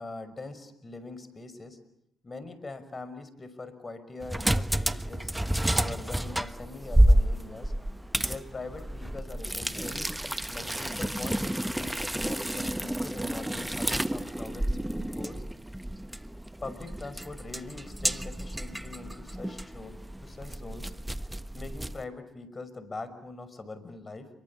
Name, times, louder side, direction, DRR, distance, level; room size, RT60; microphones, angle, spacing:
voice 1, 0.0-1.8 2.2-5.3 5.8-7.7 8.2-10.0 10.5-15.4 16.6-20.9 21.5-24.3, left 3 dB, 35° left, 13 dB, 6.0 m, -42 dB
sound 1, 4.2-22.0, right 1 dB, 10° right, 1.3 m, -29 dB
28.5 x 23.5 x 8.7 m, 0.75 s
hypercardioid pair, 50°, 0 cm